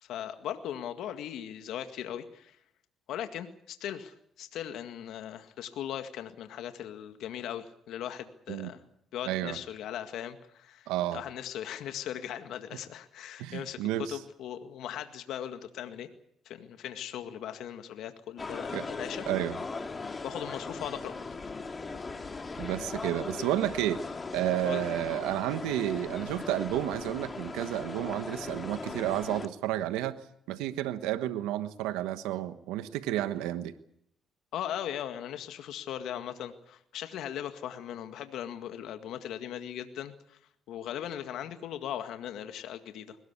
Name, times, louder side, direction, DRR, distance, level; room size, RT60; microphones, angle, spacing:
voice 1, 0.0-2.6 3.1-8.8 9.1-16.1 16.5-19.3 20.2-21.3 24.6-24.9 34.5-40.4 40.7-43.2, left 10 dB, 75° left, 8 dB, 1.9 m, -39 dB
voice 2, 9.2-9.6 10.9-11.2 13.4-14.2 18.7-18.8 19.3-19.6 22.6-24.0 24.3-30.2 30.5-33.7, right 13 dB, 85° right, 11 dB, 1.2 m, -31 dB
sound 1, 18.4-29.5, left 3 dB, 30° left, 2.9 m, -39 dB
21.5 x 19.5 x 8.3 m, 0.72 s
supercardioid pair, 60°, 0 cm